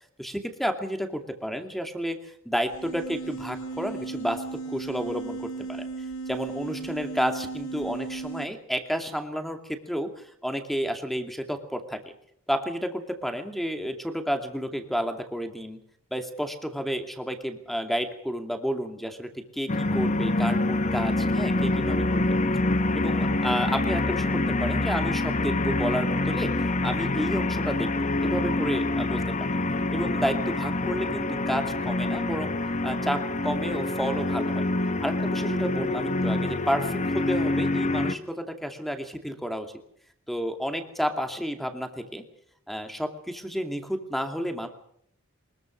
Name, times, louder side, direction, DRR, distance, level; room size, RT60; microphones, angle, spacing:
voice 1, 0.2-5.9 6.3-12.0 12.5-15.8 16.1-22.4 22.9-26.5 26.8-29.5 29.9-32.5 32.8-34.7 35.0-39.7 40.3-42.2 42.7-44.7, equal, ahead, 6 dB, 2.4 m, -31 dB
sound 1, 2.6-8.5, right 4 dB, 65° left, 2.1 m, -36 dB
sound 2, 19.7-38.1, left 2 dB, 35° left, 1.1 m, -26 dB
23.5 x 21.5 x 6.5 m, 0.67 s
head